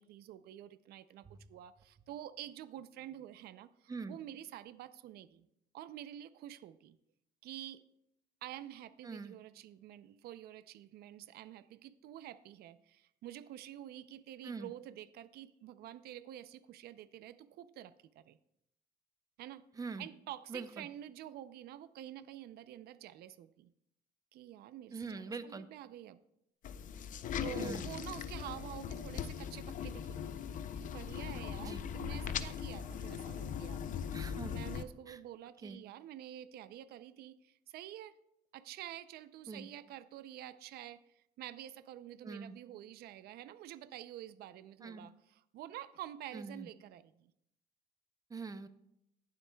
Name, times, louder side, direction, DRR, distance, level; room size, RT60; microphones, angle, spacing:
voice 1, 0.0-5.5 5.7-7.0 7.4-7.8 8.4-18.4 19.4-19.7 20.0-23.7 24.3-26.2 27.4-33.8 34.4-38.2 38.5-47.3, right 12 dB, 70° right, 13 dB, 0.5 m, -48 dB
voice 2, 19.8-20.1 20.5-20.9 24.9-25.7 27.5-27.9 31.6-31.8 34.1-34.5 35.1-35.2 35.6-35.8 39.5-39.7 42.2-42.6 44.8-45.1 46.3-46.7 48.3-48.7, right 4 dB, 20° right, 12 dB, 0.6 m, -43 dB
sound 1, 26.6-34.8, left 8 dB, 50° left, 0.5 m, -40 dB
18.5 x 7.7 x 2.3 m, 0.77 s
cardioid pair, 110°, 17 cm